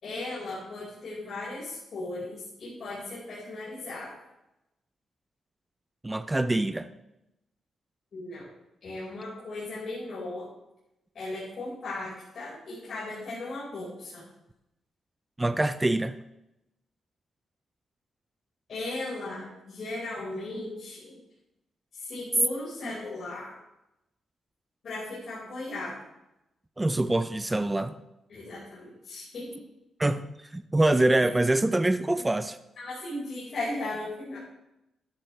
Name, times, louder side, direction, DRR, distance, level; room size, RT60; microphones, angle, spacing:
voice 1, 0.0-4.1 8.1-8.4 8.8-10.5 11.1-14.2 18.7-21.2 21.9-23.5 24.8-26.0 28.3-29.6 32.8-34.4, left 2 dB, 55° left, -8 dB, 4.7 m, -37 dB
voice 2, 6.0-6.9 15.4-16.2 26.8-28.0 30.0-30.2 30.5-32.6, right 2 dB, 15° right, 12 dB, 0.5 m, -25 dB
12.0 x 11.5 x 3.3 m, 0.90 s
cardioid pair, 120°, 0 cm